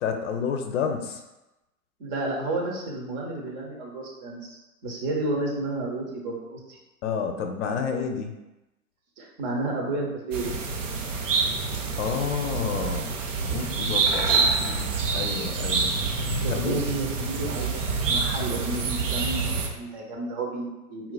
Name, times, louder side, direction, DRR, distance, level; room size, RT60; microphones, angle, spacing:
voice 1, 0.0-1.2 7.0-8.3 12.0-13.1 13.5-16.0 16.5-16.7, left 6 dB, 55° left, 5 dB, 0.5 m, -30 dB
voice 2, 2.0-6.8 9.2-10.5 16.4-17.7 18.1-21.1, right 2 dB, 45° right, -1 dB, 0.9 m, -31 dB
sound 1, 10.3-19.7, right 4 dB, 60° right, 0.6 m, -27 dB
3.9 x 2.3 x 2.2 m, 1.0 s
figure-of-eight pair, 100°, 43 cm